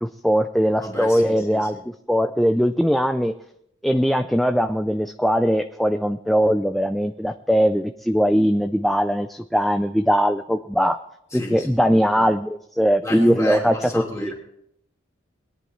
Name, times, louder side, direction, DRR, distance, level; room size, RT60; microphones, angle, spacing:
voice 1, 0.0-1.8 2.1-3.3 3.8-11.0 11.3-14.3, equal, ahead, 7 dB, 0.4 m, -20 dB
voice 2, 0.8-1.7 11.3-12.3 13.0-14.3, left 2 dB, 15° left, -2 dB, 2.8 m, -32 dB
21.0 x 10.5 x 3.2 m, 0.74 s
head